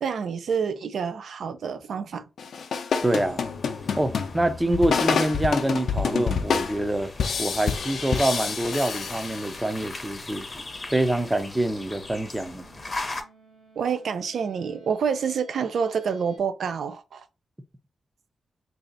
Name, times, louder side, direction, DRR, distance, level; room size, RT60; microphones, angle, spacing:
voice 1, 0.0-2.2 13.8-17.2, right 6 dB, 75° right, 0.5 m, -28 dB
sound 1, 2.4-9.8, left 6 dB, 75° left, 0.5 m, -28 dB
sound 2, 3.0-13.2, left 2 dB, 25° left, 0.7 m, -40 dB
voice 2, 3.0-3.4 4.0-7.1 7.4-10.5 10.9-12.6, right 1 dB, 15° right, 0.5 m, -25 dB
sound 3, 10.1-16.4, right 2 dB, 50° right, 1.3 m, -55 dB
3.2 x 2.8 x 3.9 m
wide cardioid pair, 125°, 0 cm